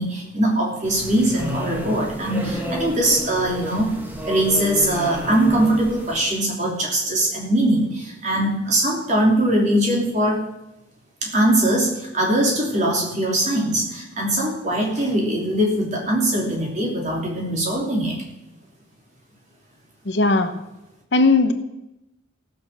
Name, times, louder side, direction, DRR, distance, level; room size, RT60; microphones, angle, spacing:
voice 1, 0.0-3.9 4.2-10.4 11.2-18.2, right 1 dB, 35° right, -1 dB, 3.1 m, -21 dB
sound 1, 0.8-6.2, equal, 10° right, 1.4 m, -31 dB
voice 2, 20.1-20.5 21.1-21.5, left 3 dB, 60° left, 8 dB, 1.0 m, -17 dB
16.0 x 6.6 x 6.8 m, 0.92 s
head